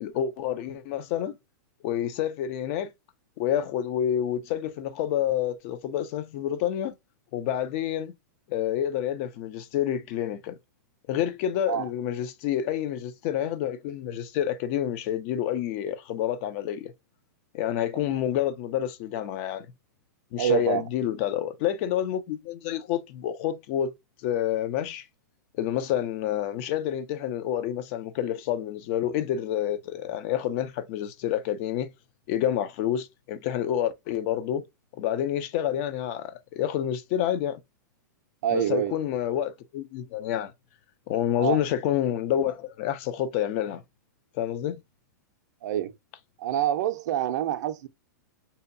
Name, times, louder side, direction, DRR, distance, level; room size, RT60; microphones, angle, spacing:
voice 1, 0.0-1.4 1.8-2.9 3.4-6.9 7.3-8.1 8.5-10.6 11.1-16.9 17.5-19.7 20.3-23.9 24.2-25.0 25.6-31.9 32.3-34.6 35.0-37.6 38.5-40.5 41.1-43.8 44.3-44.8, left 10 dB, 45° left, 0.4 m, -28 dB
voice 2, 20.4-20.8 38.4-39.0 41.4-41.6 45.6-45.9 46.4-47.9, right 11 dB, 60° right, 0.4 m, -26 dB
2.7 x 2.2 x 2.5 m
hypercardioid pair, 130°, 10 cm